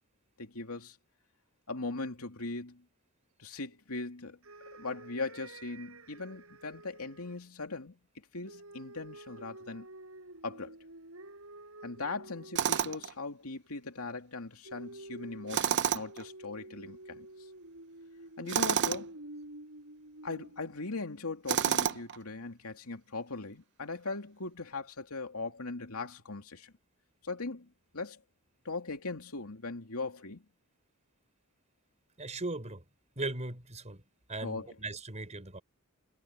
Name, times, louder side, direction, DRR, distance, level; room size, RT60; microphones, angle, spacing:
voice 1, 0.4-1.0 1.7-2.8 3.4-4.4 4.7-8.0 8.3-9.9 10.4-10.8 11.8-17.3 18.4-19.1 20.2-26.7 27.2-28.2 28.6-30.4 34.4-34.8, left 3 dB, 90° left, 2.6 m, -39 dB
sound 1, 4.4-7.4 8.5-13.2 14.7-20.8, right 2 dB, 70° right, 6.4 m, -50 dB
Tools, 12.6-13.1 15.5-16.2 18.5-19.1 21.5-22.2, right 8 dB, 55° right, 0.7 m, -29 dB
voice 2, 32.2-32.8 33.2-34.0 34.3-35.6, right 2 dB, 35° right, 4.7 m, -38 dB
head